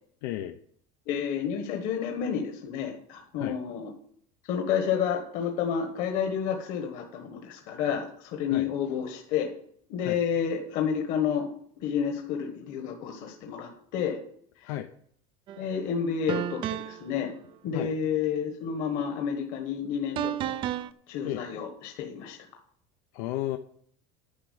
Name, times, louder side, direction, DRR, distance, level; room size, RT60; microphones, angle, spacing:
voice 1, 0.2-0.6 3.4-3.6 8.5-8.7 10.0-10.2 14.6-14.9 17.7-17.9 21.2-21.4 23.1-23.6, left 14 dB, 80° left, 7 dB, 0.7 m, -33 dB
voice 2, 1.1-3.9 4.5-9.5 9.9-11.5 11.8-14.2 14.6-14.7 15.6-17.3 17.6-20.6 21.1-22.4, left 7 dB, 50° left, 3 dB, 1.3 m, -30 dB
sound 1, 15.5-15.6 16.3-17.1 20.2-20.9, right 11 dB, 30° right, 0.3 m, -31 dB
10.0 x 6.0 x 8.4 m, 0.65 s
cardioid pair, 180°, 18 cm